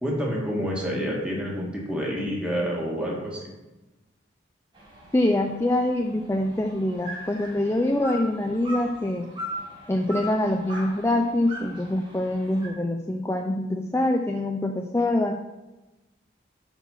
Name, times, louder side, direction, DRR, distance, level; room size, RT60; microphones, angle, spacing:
voice 1, 0.0-3.5, equal, 5° right, -4 dB, 1.7 m, -28 dB
sound 1, 4.7-12.7, equal, 25° right, 1.6 m, -40 dB
voice 2, 5.1-9.3 9.9-15.3, left 1 dB, 15° left, 3 dB, 0.4 m, -25 dB
8.3 x 4.4 x 5.6 m, 1.1 s
head